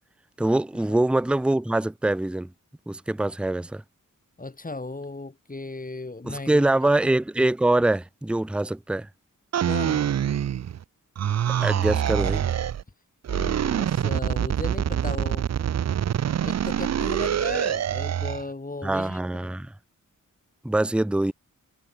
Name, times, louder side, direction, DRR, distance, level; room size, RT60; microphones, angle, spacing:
voice 1, 0.4-2.5 2.9-3.8 6.2-9.1 11.6-12.4 18.8-19.7 20.6-21.3, right 2 dB, 5° right, 0.6 m, -24 dB
voice 2, 4.4-6.9 9.6-10.0 13.3-15.5 16.4-19.2, left 2 dB, 25° left, 6.4 m, -36 dB
sound 1, 9.5-10.8 11.2-12.8 13.2-18.4, right 9 dB, 55° right, 0.5 m, -25 dB
wide cardioid pair, 135°, 33 cm